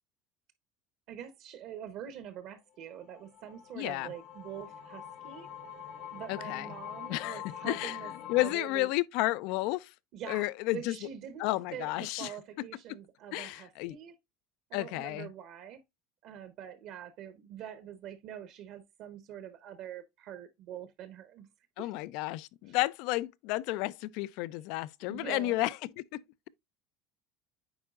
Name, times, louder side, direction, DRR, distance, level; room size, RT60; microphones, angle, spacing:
voice 1, 1.1-5.5 6.1-8.9 10.1-14.1 14.7-15.8 16.2-21.5 21.8-21.9 22.7-22.8 25.0-25.6, right 9 dB, 50° right, 0.9 m, -45 dB
sound 1, 2.8-8.5, left 10 dB, 45° left, 1.0 m, -44 dB
voice 2, 3.8-4.1 6.3-6.7 7.1-8.0 8.3-9.9 10.3-11.0 11.4-12.3 13.3-14.0 14.7-15.3 21.8-26.2, left 19 dB, 65° left, 0.4 m, -32 dB
8.9 x 4.7 x 2.4 m
cardioid pair, 155°, 0 cm